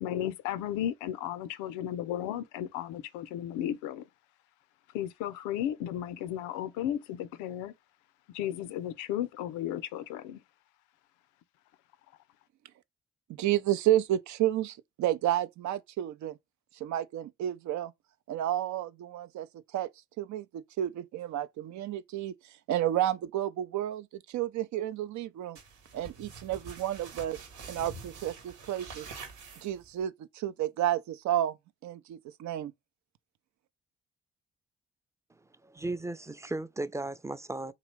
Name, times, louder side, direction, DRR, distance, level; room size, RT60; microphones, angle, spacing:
voice 1, 0.0-4.0 4.9-7.7 8.3-10.4, left 11 dB, 80° left, 0.5 m, -34 dB
voice 2, 13.3-16.4 16.7-17.9 18.3-19.5 19.7-19.9 20.2-22.3 22.7-25.6 25.9-27.4 27.7-29.1 29.6-31.6 31.8-32.7, right 12 dB, 70° right, 0.5 m, -31 dB
sound 1, 25.5-30.0, right 4 dB, 85° right, 1.2 m, -46 dB
voice 3, 35.6-37.7, right 2 dB, 10° right, 0.5 m, -36 dB
3.8 x 2.9 x 3.1 m
hypercardioid pair, 40°, 30 cm